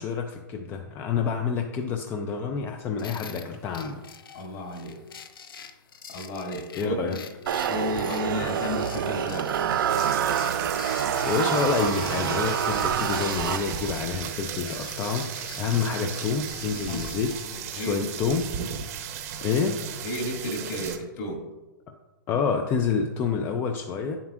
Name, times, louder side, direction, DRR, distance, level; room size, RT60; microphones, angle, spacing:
voice 1, 0.0-4.0 6.7-7.2 11.2-17.4 17.7-18.5 19.4-19.8 22.3-24.2, left 5 dB, 20° left, 5 dB, 0.3 m, -28 dB
sound 1, 3.0-20.0, left 7 dB, 90° left, 0.6 m, -45 dB
voice 2, 4.3-5.0 6.1-7.2 7.6-9.5 16.9-17.0 17.7-18.3 20.0-21.4, left 1 dB, 50° left, 0 dB, 2.0 m, -32 dB
sound 2, 7.5-14.1, right 9 dB, 75° right, 0.5 m, -27 dB
sound 3, 9.9-21.0, right 8 dB, 45° right, 0.8 m, -36 dB
8.7 x 7.3 x 2.4 m, 1.1 s
hypercardioid pair, 155°, 11 cm